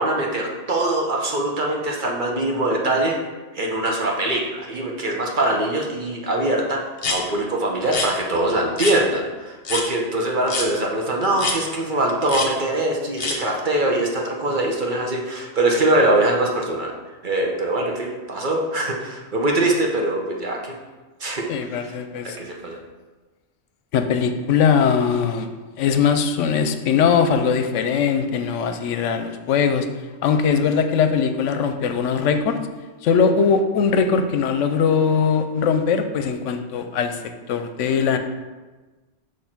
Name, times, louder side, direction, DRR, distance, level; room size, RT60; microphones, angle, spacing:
voice 1, 0.0-3.2 3.5-6.8 7.1-16.9 17.2-20.7 21.2-21.9 22.4-22.8, right 1 dB, 45° right, 0 dB, 0.9 m, -23 dB
sound 1, 7.0-7.2 7.9-8.1 8.8-9.0 9.6-9.9 10.5-10.7 11.4-11.6 12.3-12.5 13.2-13.4, left 3 dB, 55° left, 1.1 m, -25 dB
voice 2, 21.5-22.4 23.9-25.5 25.8-29.9 30.2-32.6 33.0-37.2 37.5-38.2, left 6 dB, 80° left, 7 dB, 0.9 m, -20 dB
6.5 x 3.1 x 5.9 m, 1.2 s
omnidirectional pair, 1.2 m